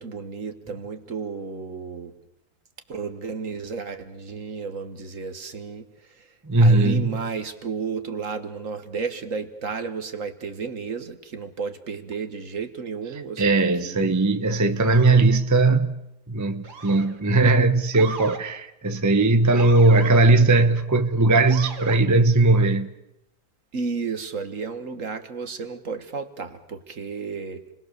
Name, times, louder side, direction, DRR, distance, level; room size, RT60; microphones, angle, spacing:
voice 1, 0.0-2.1 2.9-6.3 6.6-14.1 23.7-27.6, right 5 dB, 50° right, 1.8 m, -33 dB
voice 2, 6.4-7.1 13.4-15.9 16.3-22.9, right 2 dB, 15° right, 0.8 m, -19 dB
Motor vehicle (road) / Siren, 14.9-15.2 16.6-17.2 17.9-18.4 19.5-20.1 21.5-22.0, right 4 dB, 70° right, 2.4 m, -37 dB
29.5 x 20.5 x 6.8 m
omnidirectional pair, 1.8 m